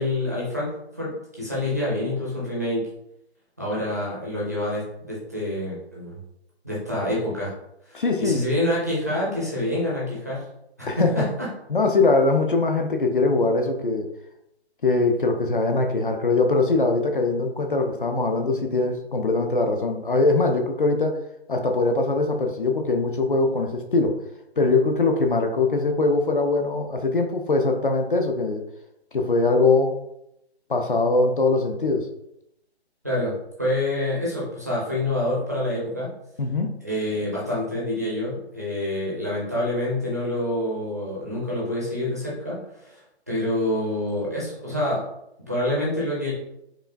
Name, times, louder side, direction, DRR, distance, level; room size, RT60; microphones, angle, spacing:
voice 1, 0.0-2.9 3.6-6.2 6.6-7.5 7.9-10.4 10.8-11.5 33.0-36.1 36.8-43.0 43.3-45.1 45.5-46.3, left 1 dB, 15° right, -7 dB, 0.5 m, -27 dB
voice 2, 7.9-8.4 10.9-11.3 11.7-14.1 14.8-21.2 21.5-24.2 24.6-28.6 29.1-29.9 30.7-32.1 36.4-36.7, left 3 dB, 50° left, 4 dB, 0.5 m, -22 dB
4.8 x 2.4 x 2.5 m, 0.80 s
figure-of-eight pair, 150°, 33 cm